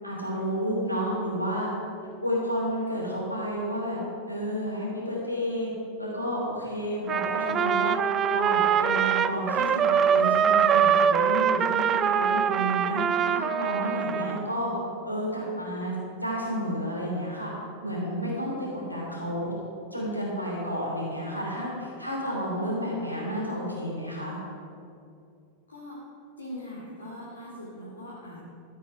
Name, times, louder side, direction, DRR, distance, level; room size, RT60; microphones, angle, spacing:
voice 1, 0.0-1.7 2.2-4.0 4.3-5.7 6.0-7.9 8.3-13.0 13.3-14.7 15.0-17.5 17.8-19.5 19.9-24.4, equal, 90° left, -4 dB, 3.2 m, -31 dB
Trumpet, 7.1-14.4, right 8 dB, 25° right, 0.4 m, -23 dB
voice 2, 26.4-28.4, left 1 dB, 75° left, -6 dB, 2.3 m, -41 dB
13.0 x 8.2 x 5.6 m, 2.5 s
figure-of-eight pair, 90°, 0 cm